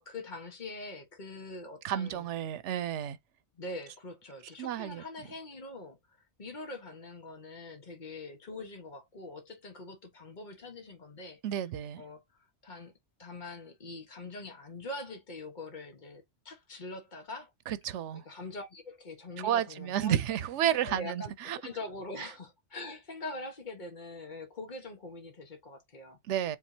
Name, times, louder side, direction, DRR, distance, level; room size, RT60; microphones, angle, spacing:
voice 1, 0.0-2.3 3.5-6.0 6.4-11.4 12.0-12.9 13.2-17.5 18.1-20.1 20.8-26.2, left 2 dB, 45° left, 1.5 m, -43 dB
voice 2, 1.8-3.2 4.6-5.0 11.4-12.0 17.7-18.2 19.4-21.6 22.2-22.3 26.3-26.6, right 10 dB, 90° right, 0.9 m, -31 dB
4.8 x 3.6 x 2.7 m
omnidirectional pair, 1.2 m